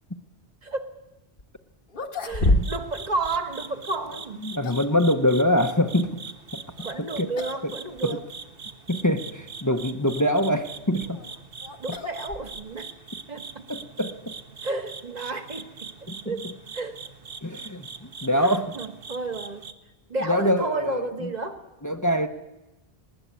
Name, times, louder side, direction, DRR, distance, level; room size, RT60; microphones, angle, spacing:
voice 1, 0.6-0.9 2.2-4.5 6.8-8.2 11.8-12.9 13.3-13.6 14.6-15.9 16.2-16.5 16.7-17.0 18.3-19.7 20.1-21.6, right 3 dB, 40° right, 7 dB, 1.7 m, -32 dB
sound 1, 1.4-1.5 1.9-3.0 3.2-3.4 4.2-5.0 6.8-7.0 7.3-7.7 8.0-8.1 8.8-8.9 10.7-12.8, left 1 dB, 55° left, 1.5 m, -28 dB
voice 2, 2.4-2.7 4.4-6.2 6.5-6.6 7.2-7.3 7.6-7.7 8.0-8.2 8.9-11.2 13.7-14.3 16.1-16.3 17.4-17.9 18.2-18.7 20.2-21.0 21.8-22.3, left 1 dB, 20° left, 8 dB, 0.8 m, -24 dB
sound 2, 2.4-19.7, right 5 dB, 65° right, 1.3 m, -42 dB
19.5 x 19.5 x 8.3 m, 1.0 s
omnidirectional pair, 1.1 m